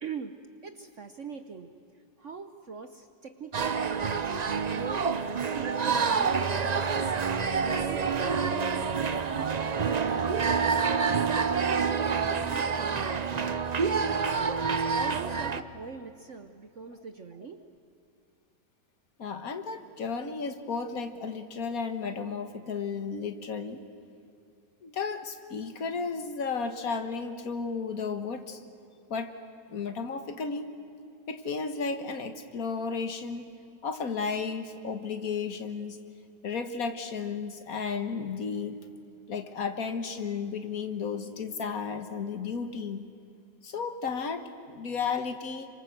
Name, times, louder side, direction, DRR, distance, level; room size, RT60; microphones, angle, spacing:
voice 1, 0.0-7.1 7.8-13.9 14.4-17.6, right 5 dB, 50° right, 8 dB, 1.2 m, -43 dB
sound 1, 3.5-15.6, right 5 dB, 80° right, 0.3 m, -27 dB
voice 2, 19.2-23.8 24.8-28.6 29.1-29.3 29.7-30.7 31.3-33.5 33.8-36.0 36.4-38.8 39.3-43.1 43.6-45.7, left 5 dB, 55° left, 8 dB, 1.9 m, -33 dB
27.5 x 25.0 x 7.9 m, 2.5 s
omnidirectional pair, 1.9 m